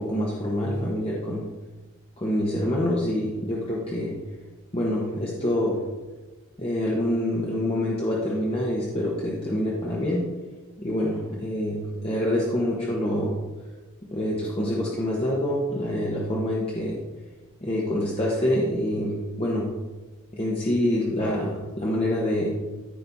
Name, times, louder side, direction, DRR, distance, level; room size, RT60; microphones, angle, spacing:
voice 1, 0.0-1.5 2.2-4.1 4.7-5.8 6.6-10.3 10.8-13.4 14.1-17.0 17.6-19.7 20.3-22.5, left 1 dB, 25° left, -4 dB, 1.3 m, -26 dB
14.5 x 5.4 x 4.2 m, 1.2 s
head